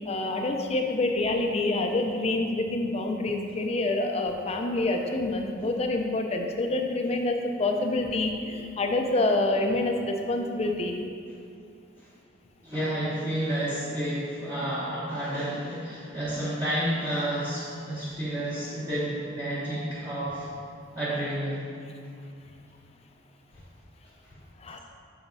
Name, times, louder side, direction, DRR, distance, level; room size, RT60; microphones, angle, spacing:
voice 1, 0.1-11.0 24.6-24.8, left 2 dB, 30° left, 3 dB, 0.5 m, -27 dB
voice 2, 12.6-20.5 20.9-21.7 23.5-23.6 24.2-24.3, right 1 dB, 20° right, -11 dB, 0.9 m, -30 dB
7.1 x 5.7 x 2.6 m, 2.4 s
head